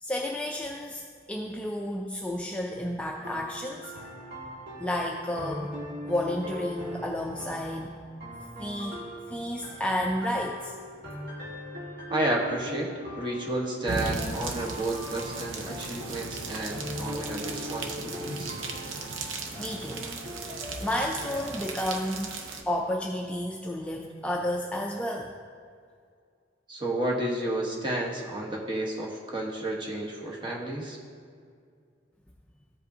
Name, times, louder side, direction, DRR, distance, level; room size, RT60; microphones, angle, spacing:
voice 1, 0.0-3.9 4.8-5.7 6.1-8.0 8.6-9.0 9.3-10.8 19.6-20.0 20.4-22.3 22.7-25.3, left 1 dB, 5° left, 0 dB, 0.4 m, -31 dB
sound 1, 3.2-21.7, left 1 dB, 50° right, 1.8 m, -40 dB
voice 2, 12.1-12.9 13.2-18.6 26.7-31.0, right 1 dB, 25° right, -2 dB, 1.1 m, -31 dB
sound 2, 13.9-22.6, right 3 dB, 90° right, 0.8 m, -37 dB
14.5 x 5.1 x 2.7 m, 2.2 s
head